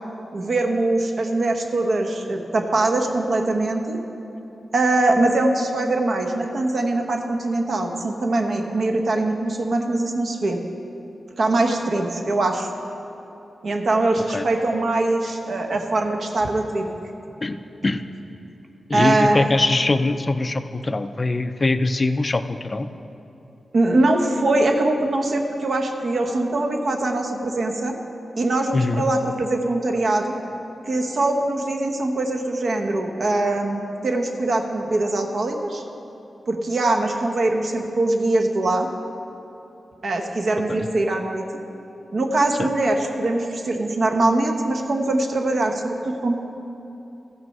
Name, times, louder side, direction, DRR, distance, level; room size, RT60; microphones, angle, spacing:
voice 1, 0.3-4.0 4.7-10.6 11.4-12.7 13.6-16.9 18.9-19.5 23.7-28.0 28.4-30.4 30.9-35.8 36.5-38.9 40.0-41.4 42.1-46.4, right 2 dB, 60° right, 3 dB, 0.9 m, -22 dB
voice 2, 18.9-22.9 28.7-29.0 40.7-40.9 42.6-42.7, left 2 dB, 30° left, 9 dB, 0.4 m, -22 dB
14.5 x 6.1 x 5.4 m, 2.9 s
wide cardioid pair, 135°, 0 cm